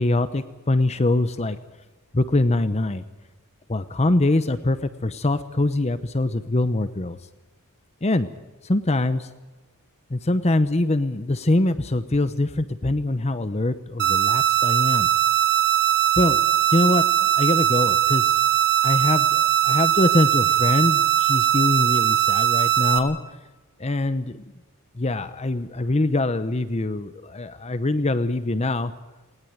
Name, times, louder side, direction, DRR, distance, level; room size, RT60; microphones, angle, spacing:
voice 1, 0.0-1.6 2.1-3.0 3.7-7.2 8.0-8.3 8.6-9.3 10.1-15.1 16.2-16.4 16.7-17.0 17.3-18.4 18.8-19.2 19.6-23.2 23.8-24.4 25.0-28.9, left 2 dB, 30° left, 12 dB, 0.8 m, -23 dB
sound 1, 14.0-23.0, right 12 dB, 50° right, 2.3 m, -20 dB
19.5 x 19.0 x 9.4 m, 1.1 s
head